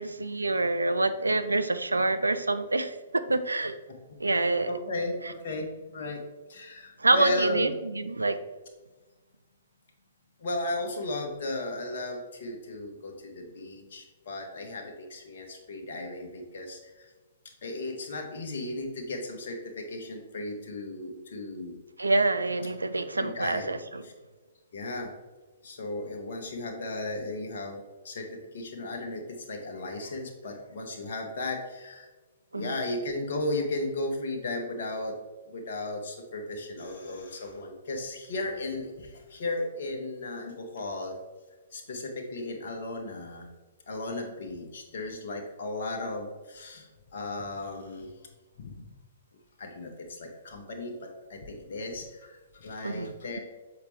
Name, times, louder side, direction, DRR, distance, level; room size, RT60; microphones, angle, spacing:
voice 1, 0.0-3.0 3.3-3.8 4.2-4.7 7.0-8.4 22.0-24.0 32.5-32.8 52.8-53.4, right 2 dB, 80° right, 11 dB, 0.4 m, -27 dB
voice 2, 4.6-6.2 6.5-7.7 10.4-17.1 17.6-21.8 22.9-23.7 24.0-24.1 24.7-25.1 25.6-32.1 32.5-35.2 35.5-41.2 41.7-43.5 43.9-48.1 48.6-48.7 49.6-53.4, left 2 dB, 55° left, 2 dB, 1.0 m, -35 dB
7.1 x 4.7 x 3.2 m, 1.2 s
figure-of-eight pair, 115°, 0 cm